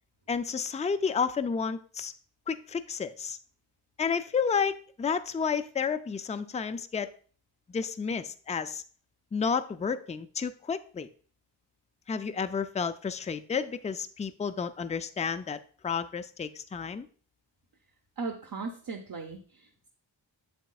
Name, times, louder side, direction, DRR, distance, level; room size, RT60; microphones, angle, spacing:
voice 1, 0.3-2.1 2.5-3.4 4.0-7.1 7.7-8.8 9.3-11.1 12.1-17.1, left 6 dB, 15° left, 11 dB, 0.3 m, -31 dB
voice 2, 18.2-19.9, right 4 dB, 45° right, 3 dB, 0.8 m, -38 dB
7.9 x 7.3 x 2.3 m, 0.43 s
wide cardioid pair, 75°, 47 cm